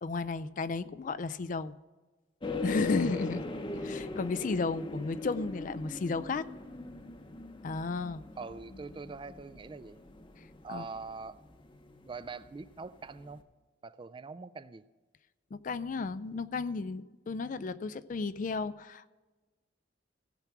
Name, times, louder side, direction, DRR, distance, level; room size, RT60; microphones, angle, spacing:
voice 1, 0.0-1.7 2.6-3.4 3.8-6.5 7.6-8.2 10.7-10.8 15.5-19.1, left 4 dB, 45° left, 0.4 m, -33 dB
sound 1, 2.4-12.5 12.8-12.9 13.2-13.3, left 2 dB, 25° left, 0.8 m, -40 dB
voice 2, 8.4-10.0 10.6-11.4 12.1-13.4 13.8-14.8, right 4 dB, 25° right, 0.3 m, -43 dB
16.5 x 5.9 x 5.9 m
head